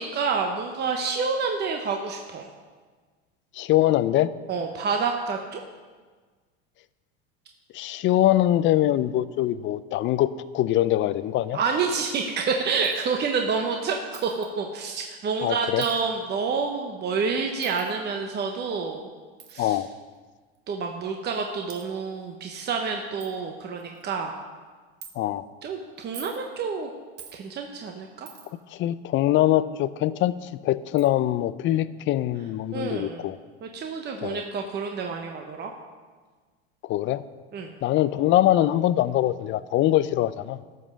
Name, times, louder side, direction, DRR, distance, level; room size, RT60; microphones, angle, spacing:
voice 1, 0.0-2.5 4.5-5.6 11.5-19.0 19.5-19.8 20.7-24.3 25.6-26.9 27.3-28.3 32.7-33.3 33.6-35.7 37.5-37.7, right 5 dB, 30° right, 3 dB, 1.0 m, -28 dB
voice 2, 3.5-4.3 7.7-11.6 15.4-15.8 19.6-19.9 25.2-25.4 28.7-33.4 34.2-34.4 36.8-37.2 37.8-40.6, left 13 dB, 40° left, 15 dB, 0.5 m, -23 dB
Coin (dropping), 12.8-13.1 14.1-14.5 15.8-16.0 17.6-17.9 19.4-19.6 20.5-20.6 21.3-21.4 21.7-21.8 22.5-22.6 22.8-22.9 23.2-23.3 23.8-24.1 25.0-25.1 26.0-26.4 27.2-27.4 28.3-28.6 30.3-30.4 31.0-31.1, right 7 dB, 50° right, 1.5 m, -44 dB
13.5 x 5.5 x 6.3 m, 1.4 s
supercardioid pair, 105°, 32 cm